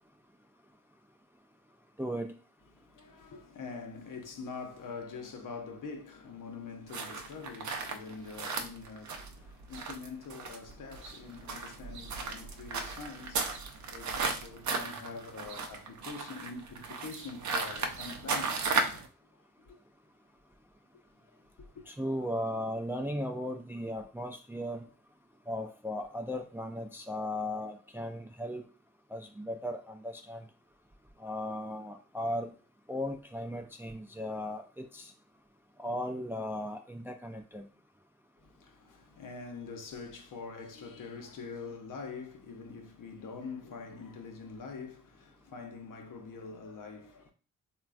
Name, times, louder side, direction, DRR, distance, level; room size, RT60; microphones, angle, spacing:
voice 1, 2.0-2.3 21.9-24.9 25.5-28.6 29.1-30.4 31.2-32.5 32.9-35.1 35.8-37.6, left 1 dB, 5° right, 0.3 m, -36 dB
voice 2, 2.7-18.6 18.9-19.0 19.6-19.8 21.6-21.8 38.4-47.3, left 4 dB, 65° left, 0.7 m, -45 dB
sound 1, 6.9-19.1, right 4 dB, 55° right, 0.6 m, -35 dB
3.0 x 2.3 x 2.4 m
supercardioid pair, 50°, 34 cm